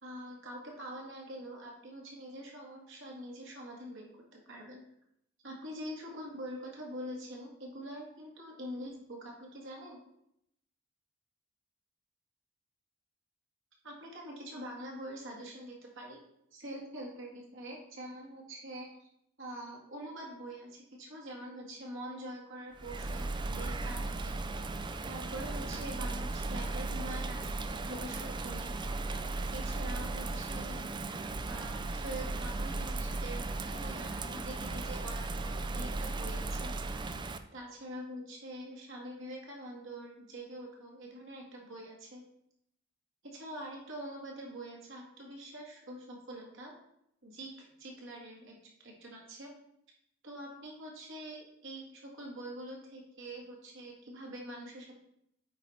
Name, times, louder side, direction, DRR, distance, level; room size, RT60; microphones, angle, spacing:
voice 1, 0.0-4.8 5.4-10.0 13.8-16.2 16.5-19.1 19.4-24.6 25.0-28.7 29.5-30.9 31.4-33.4 33.7-36.7 37.5-42.2 43.2-46.7 47.2-48.6 48.8-49.5 50.2-54.9, right 1 dB, 60° right, -1 dB, 2.0 m, -45 dB
Bird vocalization bird call bird song / Rain, 22.8-37.4, right 2 dB, 20° right, 0.4 m, -36 dB
8.7 x 4.5 x 4.2 m, 0.77 s
head